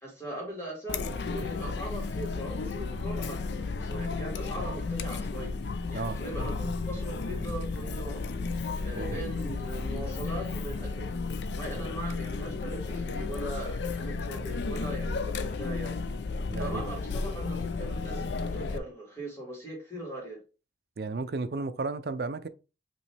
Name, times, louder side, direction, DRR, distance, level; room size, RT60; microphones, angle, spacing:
voice 1, 0.0-5.6 5.9-8.3 8.8-11.1 11.5-16.0 16.6-20.4, right 1 dB, 15° left, 2.1 m, -40 dB
Chatter, 0.9-18.8, left 4 dB, 80° left, 0.5 m, -33 dB
voice 2, 9.0-9.3 16.4-16.8 21.0-22.5, right 3 dB, 65° right, 0.5 m, -33 dB
5.2 x 3.0 x 3.3 m
head